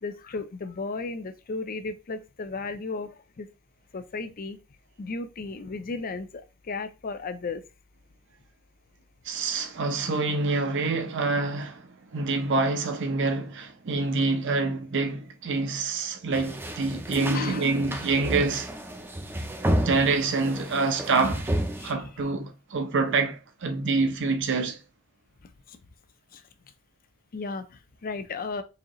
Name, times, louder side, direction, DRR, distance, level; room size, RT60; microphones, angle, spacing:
voice 1, 0.0-3.5 3.9-4.6 5.0-7.6 17.3-17.8 21.8-22.3 25.4-25.8 26.3-26.4 27.3-28.6, left 3 dB, 45° left, 0.5 m, -35 dB
voice 2, 9.2-18.7 19.8-21.5 21.8-24.8, right 3 dB, 60° right, 0.7 m, -26 dB
sound 1, 16.3-21.9, right 1 dB, 10° right, 0.5 m, -31 dB
4.8 x 2.8 x 3.0 m
head